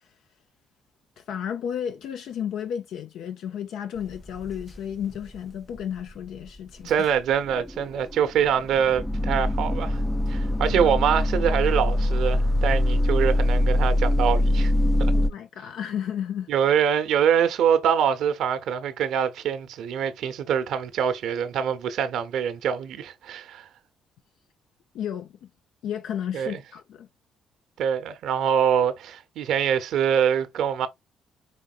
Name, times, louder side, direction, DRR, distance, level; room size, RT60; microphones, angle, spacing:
voice 1, 1.2-6.9 10.7-10.9 15.1-16.5 24.9-25.5 25.8-27.1, left 9 dB, 75° left, 0.5 m, -33 dB
sound 1, 4.1-4.8 5.0-5.4 5.8-5.9 6.1-6.2 6.9-15.3, left 1 dB, 5° left, 0.3 m, -23 dB
voice 2, 6.8-10.0 10.3-14.7 16.5-23.7 26.3-26.6 27.8-30.9, right 8 dB, 75° right, 0.7 m, -24 dB
5.1 x 3.6 x 2.4 m
cardioid pair, 85°, 0 cm